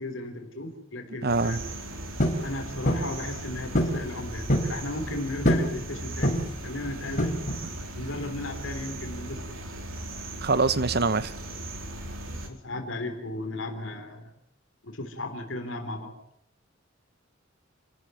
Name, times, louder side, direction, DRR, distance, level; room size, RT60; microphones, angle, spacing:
voice 1, 0.0-1.6 2.4-7.4 8.0-9.5 12.0-12.1 12.4-14.3 14.8-16.1, left 2 dB, 70° left, 3.8 m, -35 dB
voice 2, 1.2-1.6 10.4-11.3, right 4 dB, 55° right, 1.1 m, -24 dB
sound 1, 1.3-12.5, right 1 dB, 85° right, 4.3 m, -38 dB
sound 2, 2.2-2.4 2.9-3.1 3.7-4.0 4.3-4.7 5.4-5.7 6.2-6.6 7.2-7.7, equal, 40° left, 4.6 m, -24 dB
28.5 x 14.0 x 9.2 m
head